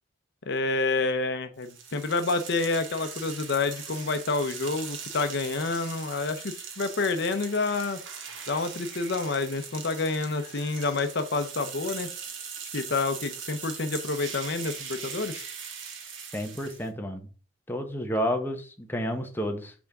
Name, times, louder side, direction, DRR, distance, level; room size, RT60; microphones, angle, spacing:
voice 1, 0.5-8.0 8.5-12.1 12.7-15.4, left 3 dB, 65° left, 9 dB, 0.7 m, -28 dB
sound 1, 1.6-16.9, right 6 dB, 80° right, 1.3 m, -40 dB
voice 2, 16.3-17.3 17.7-19.7, equal, 10° left, 4 dB, 0.9 m, -30 dB
6.1 x 3.5 x 5.9 m, 0.38 s
head